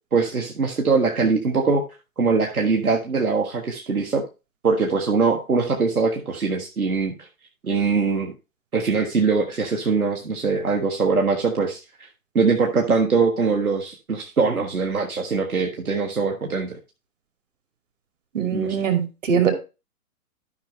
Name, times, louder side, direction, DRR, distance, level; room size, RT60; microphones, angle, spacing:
voice 1, 0.1-1.8 2.2-4.2 4.6-7.3 7.6-8.3 8.7-12.1 12.3-16.8 18.5-18.8, right 4 dB, 75° right, 1 dB, 1.6 m, -22 dB
voice 2, 18.3-19.5, right 7 dB, 55° right, 6 dB, 2.5 m, -22 dB
13.0 x 5.4 x 3.3 m, 0.29 s
figure-of-eight pair, 115°, 44 cm